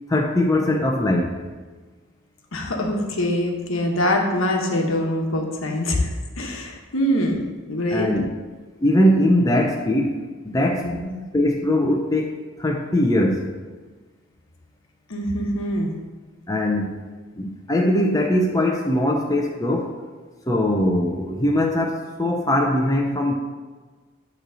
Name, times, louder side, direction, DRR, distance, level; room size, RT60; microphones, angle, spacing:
voice 1, 0.1-1.4 7.9-8.3 8.8-10.9 11.3-13.5 16.5-17.1 17.4-19.9 20.5-23.3, left 1 dB, 15° left, 0 dB, 0.5 m, -21 dB
voice 2, 2.5-7.4 7.7-8.1 10.8-11.1 15.1-15.9, left 1 dB, 65° left, 2 dB, 1.1 m, -24 dB
9.2 x 3.1 x 6.2 m, 1.3 s
head